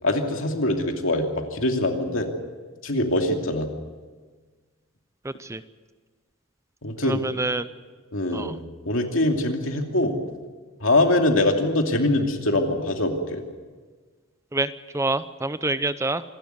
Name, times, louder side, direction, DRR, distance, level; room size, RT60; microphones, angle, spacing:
voice 1, 0.0-2.3 2.8-3.7 6.8-7.3 8.1-8.5 8.8-10.2 10.8-13.4, left 1 dB, 70° left, 3 dB, 2.7 m, -23 dB
voice 2, 5.2-5.6 7.0-7.7 8.3-8.5 14.5-16.2, right 2 dB, 15° right, 13 dB, 0.6 m, -27 dB
26.5 x 12.5 x 9.5 m, 1.4 s
head